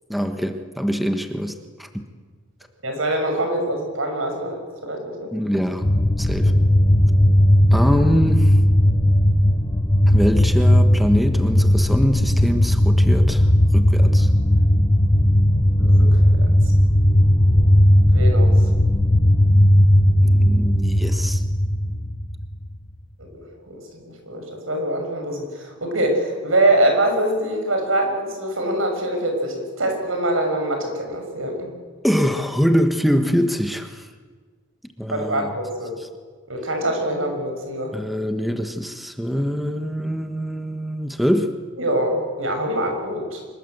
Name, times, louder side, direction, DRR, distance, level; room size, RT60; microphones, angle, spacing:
voice 1, 0.1-2.0 5.3-5.9 6.2-6.5 7.7-8.6 10.1-13.5 13.7-14.3 20.2-21.4 32.0-34.1 35.0-35.5 36.0-36.1 37.9-41.5, equal, ahead, 6 dB, 1.4 m, -23 dB
voice 2, 2.8-5.3 15.8-16.5 18.1-18.5 23.2-31.7 35.1-35.9 36.5-37.9 41.8-43.4, right 1 dB, 85° right, 4 dB, 6.6 m, -24 dB
sound 1, 5.8-22.6, left 1 dB, 25° left, 1.1 m, -16 dB
25.5 x 22.0 x 8.1 m, 1.5 s
head